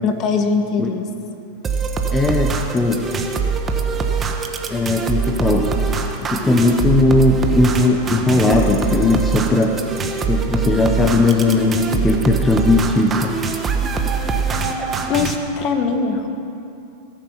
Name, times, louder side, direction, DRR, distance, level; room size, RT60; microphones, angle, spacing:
voice 1, 0.0-1.0 14.5-14.7 15.1-16.3, left 5 dB, 40° left, 6 dB, 1.5 m, -21 dB
sound 1, 1.6-15.4, right 5 dB, 25° right, 1.3 m, -23 dB
voice 2, 2.1-3.1 4.7-5.7 6.2-9.8 10.3-13.4, left 2 dB, 15° left, 2 dB, 1.0 m, -17 dB
20.5 x 9.3 x 5.7 m, 2.7 s
hypercardioid pair, 115°, 0 cm